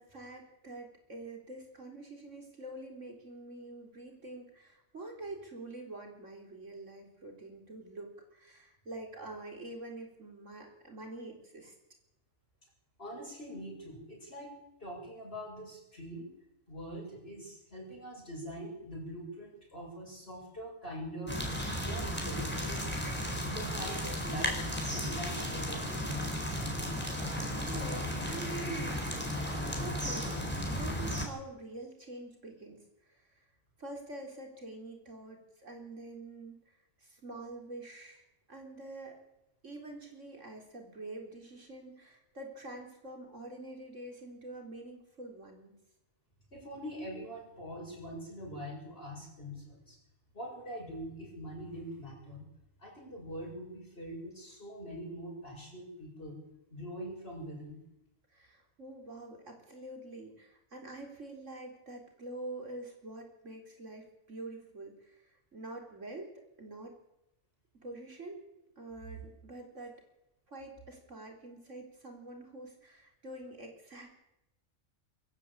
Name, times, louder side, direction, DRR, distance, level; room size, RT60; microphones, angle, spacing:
voice 1, 0.0-11.7 27.6-29.3 29.7-30.4 30.7-32.8 33.0-33.4 33.8-36.6 37.0-39.2 39.6-45.7 58.3-66.3 66.6-67.0 67.8-68.5 68.8-69.9 70.5-74.1, right 2 dB, 75° right, 2 dB, 4.5 m, -46 dB
voice 2, 13.0-16.4 16.7-21.4 21.7-22.9 23.5-26.4 46.5-50.0 50.3-52.5 52.8-56.4 56.7-57.8, equal, 50° left, -2 dB, 7.5 m, -43 dB
sound 1, 21.3-31.3, equal, 10° left, 4.4 m, -34 dB
23.0 x 14.0 x 8.7 m, 0.87 s
omnidirectional pair, 1.3 m